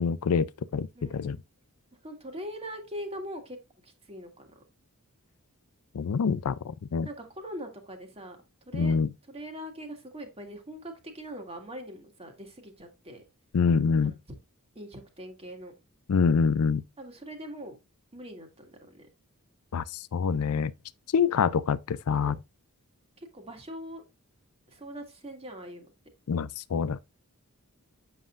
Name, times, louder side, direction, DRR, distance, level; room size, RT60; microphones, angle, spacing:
voice 1, 0.0-1.4 5.9-7.1 8.7-9.1 13.5-14.1 16.1-16.8 19.7-20.7 21.1-22.4 26.3-27.0, left 6 dB, 70° left, 0.4 m, -26 dB
voice 2, 0.9-1.4 2.0-3.6 3.8-4.6 7.0-8.4 8.7-9.0 9.3-13.2 14.0-14.1 14.8-15.7 17.0-17.8 18.1-19.1 22.1-22.3 23.2-24.0 24.7-25.9, equal, 25° right, 1.9 m, -42 dB
7.6 x 6.7 x 2.5 m
head